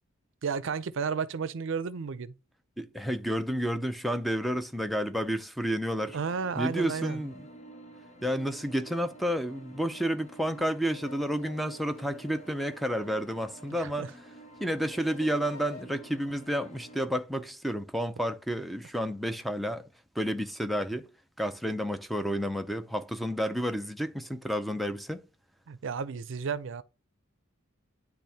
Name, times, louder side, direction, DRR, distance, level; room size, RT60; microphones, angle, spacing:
voice 1, 0.4-2.3 6.1-7.2 13.8-14.1 25.7-26.8, right 5 dB, 65° right, 0.5 m, -32 dB
voice 2, 2.8-6.2 6.6-7.4 8.2-14.1 14.6-19.8 20.2-21.1 21.4-25.2, equal, ahead, 0.5 m, -30 dB
sound 1, 6.0-17.0, right 2 dB, 35° left, 0.9 m, -50 dB
sound 2, 10.8-14.2 14.8-15.8, left 3 dB, 70° left, 1.7 m, -50 dB
10.5 x 3.5 x 2.8 m
head